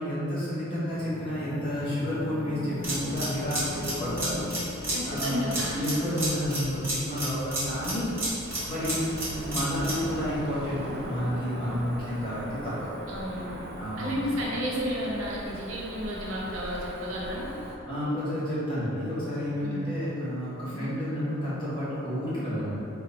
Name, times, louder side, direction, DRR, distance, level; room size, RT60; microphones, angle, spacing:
voice 1, 0.0-4.4 5.0-8.1 8.6-12.9 13.7-14.1 17.8-22.7, equal, 25° left, -10 dB, 1.4 m, -30 dB
sound 1, 0.8-10.8, left 2 dB, 45° left, 0.3 m, -41 dB
sound 2, 2.8-10.1, right 1 dB, 10° right, 1.3 m, -32 dB
voice 2, 4.9-5.8 13.1-13.6 14.0-17.5 19.6-19.8 20.7-20.9, equal, 85° right, -4 dB, 0.9 m, -32 dB
Cricket / Motor vehicle (road), 8.4-17.8, right 1 dB, 50° right, 0.5 m, -40 dB
3.8 x 3.2 x 4.0 m, 3.0 s
head